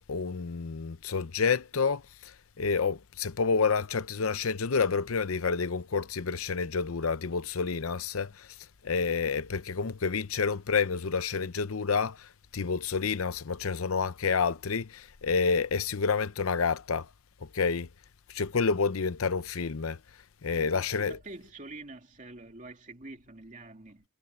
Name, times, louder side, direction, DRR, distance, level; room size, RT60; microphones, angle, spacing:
voice 1, 0.1-2.3 2.6-8.5 8.8-12.3 12.5-17.1 17.5-17.9 18.3-20.0 20.4-21.2, left 5 dB, 75° left, 0.7 m, -29 dB
voice 2, 20.7-24.0, right 2 dB, 35° right, 2.6 m, -46 dB
head